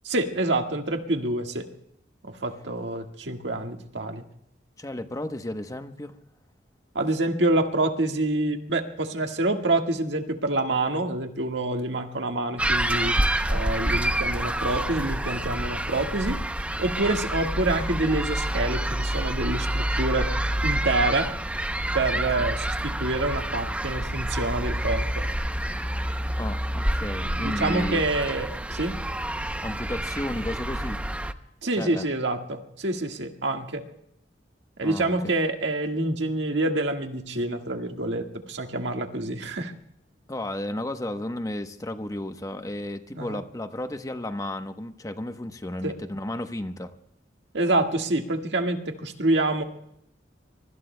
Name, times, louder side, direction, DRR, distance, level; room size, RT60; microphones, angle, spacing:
voice 1, 0.0-1.7 2.2-4.2 6.9-13.2 13.5-16.4 16.8-20.3 20.6-21.3 21.9-25.2 27.4-28.9 31.6-33.8 34.8-39.7 43.1-43.4 45.8-45.9 47.5-49.6, right 2 dB, 75° right, 4 dB, 1.7 m, -27 dB
voice 2, 4.8-6.2 26.4-28.0 29.6-31.0 31.8-32.1 34.8-35.3 40.3-46.9, left 1 dB, 20° left, 8 dB, 0.9 m, -33 dB
sound 1, 12.6-31.3, right 1 dB, 5° right, 0.6 m, -28 dB
25.0 x 24.0 x 2.2 m, 0.75 s
head